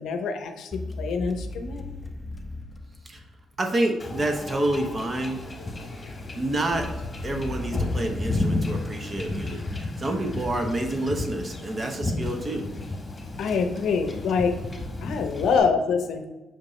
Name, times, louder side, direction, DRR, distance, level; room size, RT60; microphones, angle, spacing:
voice 1, 0.0-1.8 13.4-14.5 15.0-16.2, left 5 dB, 75° left, 6 dB, 0.7 m, -25 dB
sound 1, 0.7-3.7 6.7-10.1, left 1 dB, 10° left, 0.7 m, -37 dB
voice 2, 3.6-5.4 6.3-6.9 7.2-12.7 13.4-13.5, right 1 dB, 30° right, 4 dB, 1.0 m, -28 dB
Wind / Ocean / Boat Water vehicle, 4.0-15.6, left 2 dB, 25° left, 1.4 m, -33 dB
6.1 x 5.1 x 3.2 m, 1.1 s
cardioid pair, 90°, 0 cm